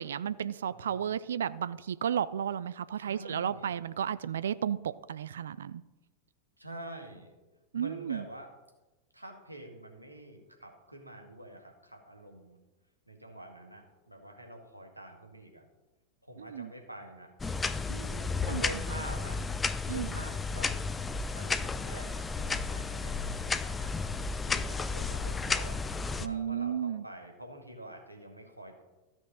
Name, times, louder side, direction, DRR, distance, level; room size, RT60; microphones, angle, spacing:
voice 1, 0.0-5.8 7.7-8.2 16.4-16.7 17.9-18.6 19.9-20.1 26.2-27.0, right 9 dB, 65° right, 16 dB, 0.4 m, -33 dB
voice 2, 3.0-3.7 6.6-7.3 7.7-8.5 9.1-12.6 13.1-15.6 16.2-17.3 18.4-19.4 19.9-20.8 21.4-23.9 24.4-25.8 26.1-28.8, right 1 dB, 85° right, 2 dB, 2.1 m, -46 dB
sound 1, 17.4-26.3, left 4 dB, 15° left, 0.5 m, -33 dB
14.0 x 6.2 x 5.6 m, 1.1 s
figure-of-eight pair, 90°, 0 cm